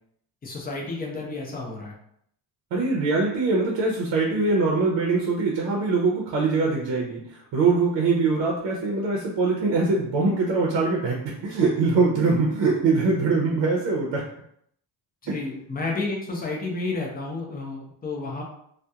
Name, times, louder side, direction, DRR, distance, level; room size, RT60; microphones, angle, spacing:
voice 1, 0.4-1.9 15.2-18.4, left 3 dB, 20° left, -1 dB, 0.4 m, -31 dB
voice 2, 2.7-14.2, right 3 dB, 85° right, -2 dB, 0.6 m, -23 dB
2.8 x 2.1 x 2.3 m, 0.70 s
cardioid pair, 165°, 43 cm